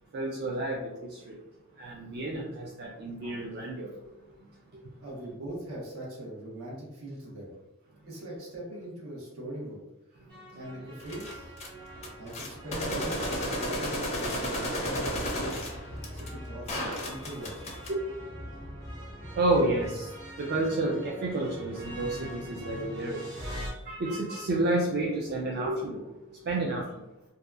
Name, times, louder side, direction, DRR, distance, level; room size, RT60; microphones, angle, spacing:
voice 1, 0.1-1.4 1.8-3.9 17.9-18.0 19.4-20.1 20.4-26.0 26.3-27.0, right 2 dB, 45° right, -3 dB, 0.3 m, -30 dB
voice 2, 5.0-7.5 8.1-9.8 10.5-11.5 12.2-15.6 16.1-17.6, right 1 dB, 75° right, -4 dB, 1.0 m, -40 dB
sound 1, 10.3-23.7, equal, 20° right, 0.9 m, -43 dB
sound 2, 11.0-11.7 12.0-17.9, equal, 30° left, 0.4 m, -33 dB
2.7 x 2.3 x 2.3 m, 0.98 s
head